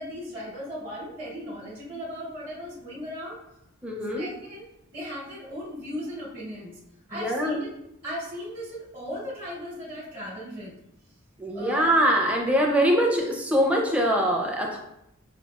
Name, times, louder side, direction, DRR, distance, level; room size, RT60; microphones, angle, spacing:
voice 1, 0.0-3.4 4.2-4.7 4.9-6.7 7.1-7.7 8.0-10.7 11.5-11.9, equal, 40° right, -7 dB, 1.0 m, -37 dB
voice 2, 3.8-4.3 7.1-7.6 11.4-14.8, equal, 5° right, -1 dB, 0.5 m, -23 dB
5.8 x 2.4 x 2.3 m, 0.82 s
head